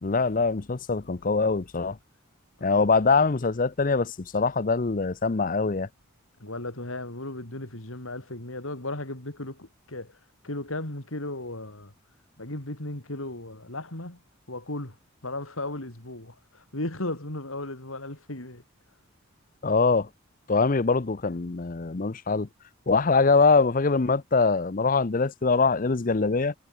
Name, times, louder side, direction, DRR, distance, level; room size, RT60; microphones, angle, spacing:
voice 1, 0.0-2.0 2.6-5.9 19.6-20.1 20.5-22.5 22.9-26.5, left 4 dB, 40° left, 0.6 m, -23 dB
voice 2, 6.4-10.1 10.4-11.9 12.4-14.2 14.5-15.0 15.2-18.6, left 2 dB, 75° left, 4.1 m, -35 dB
head